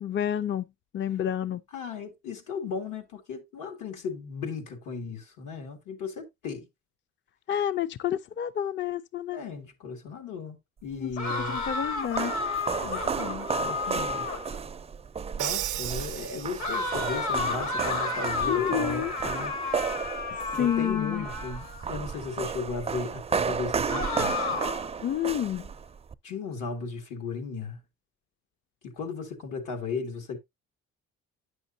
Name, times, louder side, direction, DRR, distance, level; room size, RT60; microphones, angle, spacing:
voice 1, 0.0-0.7 0.9-1.6 7.5-9.4 10.9-11.1 11.5-12.3 18.4-19.1 20.6-21.3 25.0-25.7, left 10 dB, 40° left, 0.4 m, -29 dB
voice 2, 1.7-6.7 9.3-11.6 12.8-14.3 15.4-19.5 20.6-24.7 26.2-27.8 28.8-30.4, left 4 dB, 85° left, 2.2 m, -36 dB
sound 1, 11.1-26.1, right 6 dB, 20° right, 0.4 m, -33 dB
sound 2, 11.2-14.6 16.6-21.9 23.9-24.9, left 3 dB, 70° left, 1.7 m, -32 dB
Crash cymbal, 15.4-17.1, right 15 dB, 75° right, 0.5 m, -34 dB
9.1 x 6.3 x 2.7 m
cardioid pair, 90°, 30 cm